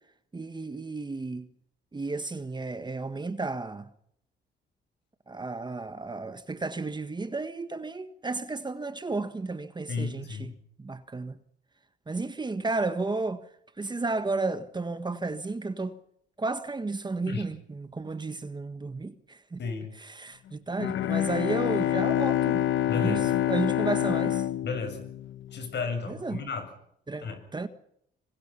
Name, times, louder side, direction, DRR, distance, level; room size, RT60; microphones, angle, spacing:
voice 1, 0.3-1.5 1.9-3.9 5.3-10.5 10.8-11.4 12.1-13.4 13.8-16.0 16.4-19.6 20.0-22.7 22.9-24.4 26.1-26.4 27.1-27.7, right 3 dB, 20° right, 1.5 m, -33 dB
voice 2, 9.9-10.5 17.3-17.5 19.6-19.9 22.9-23.3 24.6-25.0 25.5-26.7 27.2-27.4, left 4 dB, 60° left, 7.6 m, -33 dB
Bowed string instrument, 20.8-25.7, left 12 dB, 75° left, 1.2 m, -27 dB
26.5 x 24.0 x 5.7 m
cardioid pair, 90°, 20 cm